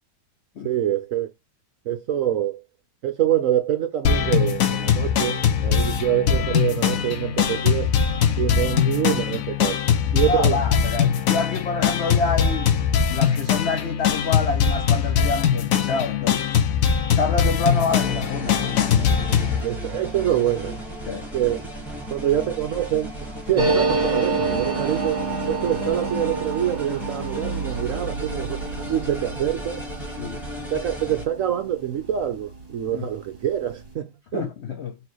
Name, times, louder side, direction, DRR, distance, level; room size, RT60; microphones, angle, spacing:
voice 1, 0.6-1.3 1.9-2.6 3.0-7.9 8.4-9.8 10.1-10.6 19.6-20.8 21.3-21.6 22.1-25.2 25.5-28.6 28.9-29.9 30.7-34.5, right 11 dB, 65° right, 0.8 m, -25 dB
sound 1, 4.0-19.6, left 8 dB, 60° left, 1.0 m, -21 dB
voice 2, 10.3-12.7 13.1-16.6 17.2-19.2 21.1-21.3 23.6-23.8 30.2-30.4 32.9-33.1 34.3-35.0, left 4 dB, 80° left, 0.6 m, -27 dB
sound 2, 17.7-31.3, equal, ahead, 1.3 m, -34 dB
sound 3, 23.6-32.7 33.0-33.1 33.3-33.9, right 4 dB, 25° right, 1.2 m, -28 dB
4.3 x 3.1 x 3.0 m
omnidirectional pair, 1.9 m